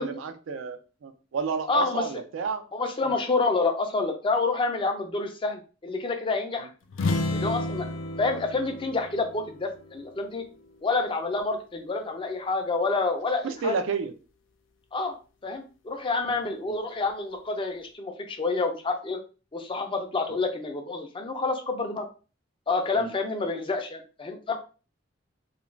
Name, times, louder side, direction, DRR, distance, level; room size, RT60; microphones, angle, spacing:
voice 1, 0.0-2.7 3.0-3.1 6.6-6.7 13.4-14.1 16.7-16.8 22.9-23.1, right 5 dB, 85° right, 0.4 m, -31 dB
voice 2, 1.7-2.1 2.7-6.7 7.3-7.9 8.2-10.4 10.8-13.7 14.9-15.1 15.4-19.2 19.5-22.1 22.7-24.6, left 3 dB, 25° left, 0.4 m, -28 dB
sound 1, 6.9-10.6, left 2 dB, 80° left, 0.4 m, -32 dB
2.4 x 2.2 x 3.1 m
head